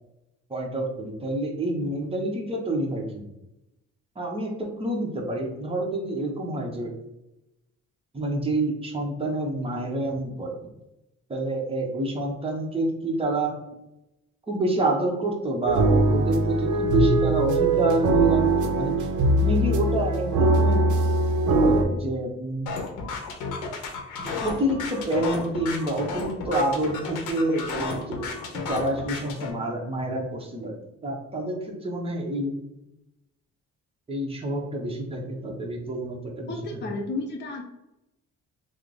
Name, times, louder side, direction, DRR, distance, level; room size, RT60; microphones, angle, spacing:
voice 1, 0.5-3.3 4.1-6.9 8.1-10.6 11.3-13.5 14.5-19.1 19.4-20.9 21.5-22.7 24.2-32.6 34.1-36.8, right 1 dB, 20° right, -1 dB, 0.9 m, -28 dB
sound 1, 15.7-21.8, right 2 dB, 80° right, 0.6 m, -21 dB
sound 2, 22.7-29.5, left 4 dB, 90° left, 0.7 m, -33 dB
voice 2, 36.5-37.6, left 3 dB, 40° left, 1 dB, 0.5 m, -32 dB
3.1 x 2.1 x 3.8 m, 0.91 s
cardioid pair, 90°, 30 cm